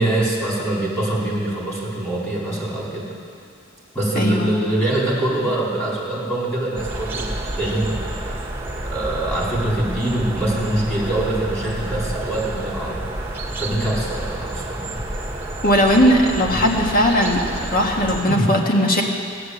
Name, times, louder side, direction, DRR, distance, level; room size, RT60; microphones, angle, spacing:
voice 1, 0.0-3.1 3.9-7.3 7.6-8.4 8.8-13.0 13.6-15.0 16.5-16.6 18.3-18.5, right 1 dB, 10° left, -6 dB, 4.1 m, -23 dB
voice 2, 4.2-4.5 15.6-19.0, equal, 45° left, 0 dB, 1.8 m, -18 dB
sound 1, 6.8-18.2, right 1 dB, 10° right, 1.8 m, -29 dB
15.5 x 10.5 x 8.1 m, 2.3 s
head